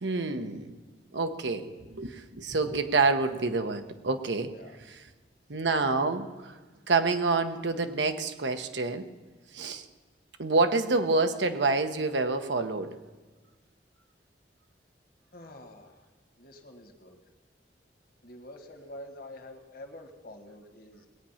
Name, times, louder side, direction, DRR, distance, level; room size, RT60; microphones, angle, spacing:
voice 1, 0.0-0.8 1.1-4.5 5.5-6.6 6.9-9.1 9.5-9.8 10.4-12.9, right 3 dB, 90° right, 7 dB, 1.0 m, -27 dB
voice 2, 15.3-16.0 16.4-17.2 18.2-21.1, left 1 dB, 55° left, 5 dB, 1.7 m, -47 dB
20.0 x 8.7 x 5.7 m, 1.3 s
head